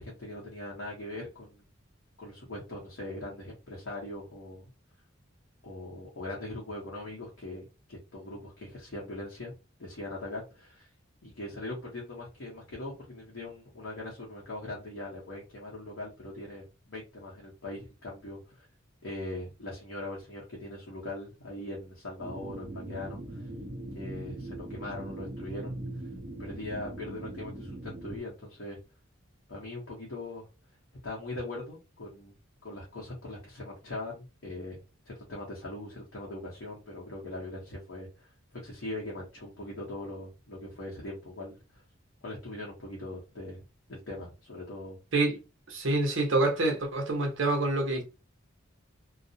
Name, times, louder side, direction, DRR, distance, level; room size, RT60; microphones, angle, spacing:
voice 1, 0.0-1.6 2.2-4.6 5.6-9.5 9.8-10.9 11.2-18.7 19.0-23.5 23.9-25.8 26.4-28.8 29.5-30.5 31.0-32.3 32.6-34.8 35.1-38.3 38.6-41.8 42.2-43.6 43.9-45.0, left 1 dB, 65° left, 0.8 m, -41 dB
sound 1, 22.2-28.2, right 1 dB, 25° right, 0.7 m, -40 dB
voice 2, 45.7-48.0, right 2 dB, 65° right, 0.8 m, -27 dB
2.3 x 2.0 x 2.6 m
head